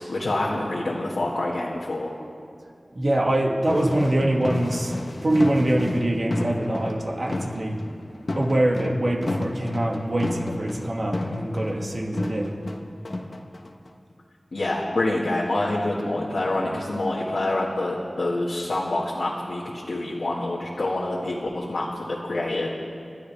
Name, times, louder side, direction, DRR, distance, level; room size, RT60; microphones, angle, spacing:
voice 1, 0.0-2.1 14.5-22.7, left 2 dB, 85° left, -5 dB, 1.9 m, -26 dB
voice 2, 2.9-7.8 8.4-12.6, right 1 dB, 55° right, 0 dB, 2.2 m, -24 dB
sound 1, 3.7-14.1, left 2 dB, 60° left, 1.1 m, -32 dB
29.5 x 12.5 x 3.5 m, 2.4 s
wide cardioid pair, 45°, 0 cm